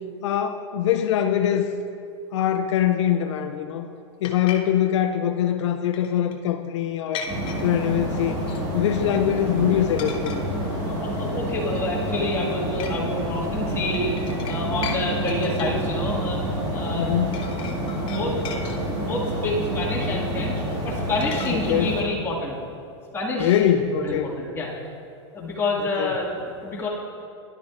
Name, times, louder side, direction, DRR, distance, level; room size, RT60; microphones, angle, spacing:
voice 1, 0.2-1.7 2.3-3.9 4.2-7.3 7.6-8.4 8.7-10.4 17.0-17.4 21.5-22.0 23.4-24.3 26.0-26.1, left 10 dB, 80° left, 7 dB, 0.5 m, -23 dB
sound 1, 4.2-4.6 5.9-6.4 7.1-7.6 8.4-8.9 9.2-9.5 10.0-10.4 10.8-11.0 11.6-12.1 12.8-12.9 13.5-15.0 15.3-15.8 16.9-17.0 17.3-19.2 21.2-21.5, left 7 dB, 35° left, 0.8 m, -37 dB
sound 2, 7.3-22.0, right 1 dB, 25° right, 1.7 m, -28 dB
voice 2, 10.7-14.1 14.5-17.1 18.1-18.6 19.0-22.6 23.1-24.7 25.3-26.9, left 2 dB, 15° left, -6 dB, 1.9 m, -28 dB
11.0 x 10.0 x 2.5 m, 2.5 s
supercardioid pair, 130°, 15 cm